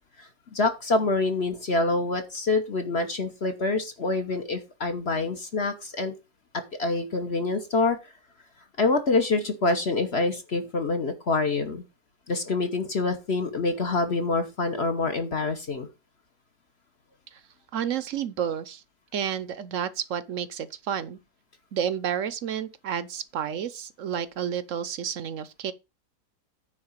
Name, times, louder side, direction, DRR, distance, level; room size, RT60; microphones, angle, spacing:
voice 1, 0.2-6.1 6.8-8.0 8.8-11.8 12.3-15.9, left 3 dB, 45° left, 1.3 m, -26 dB
voice 2, 17.7-18.8 19.1-21.2 21.7-25.7, right 8 dB, 60° right, 1.0 m, -30 dB
9.7 x 4.0 x 7.3 m
omnidirectional pair, 1.7 m